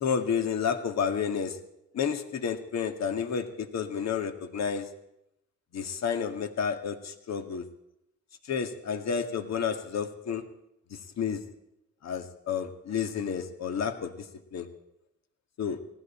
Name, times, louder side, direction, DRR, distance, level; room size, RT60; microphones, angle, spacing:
voice 1, 0.0-1.6 1.9-4.9 5.7-7.7 8.5-10.4 10.9-11.4 12.0-14.1 14.5-14.7 15.6-15.8, left 7 dB, 60° left, 7 dB, 2.0 m, -30 dB
19.5 x 16.5 x 4.4 m, 0.82 s
cardioid pair, 90°, 30 cm